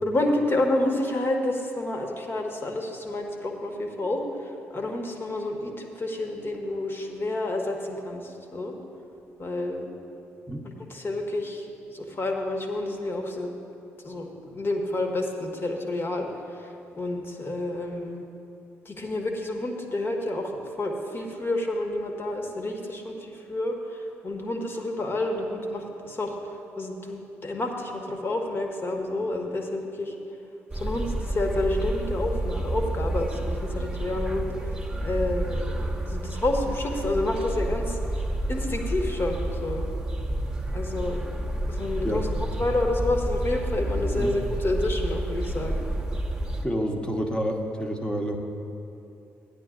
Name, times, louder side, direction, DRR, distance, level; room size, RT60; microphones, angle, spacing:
voice 1, 0.0-8.7 9.4-9.9 10.9-11.7 11.9-13.5 14.0-16.3 17.0-18.2 18.8-26.4 26.8-30.1 30.7-34.5 35.0-38.0 38.5-39.8 40.7-41.2 41.7-42.3 42.6-45.8, left 2 dB, 30° left, 2 dB, 1.4 m, -29 dB
sound 1, 30.7-46.6, right 1 dB, 10° right, 1.2 m, -30 dB
voice 2, 46.6-48.4, equal, 15° left, 2 dB, 1.3 m, -28 dB
15.0 x 10.5 x 2.5 m, 2.7 s
figure-of-eight pair, 45°, 7 cm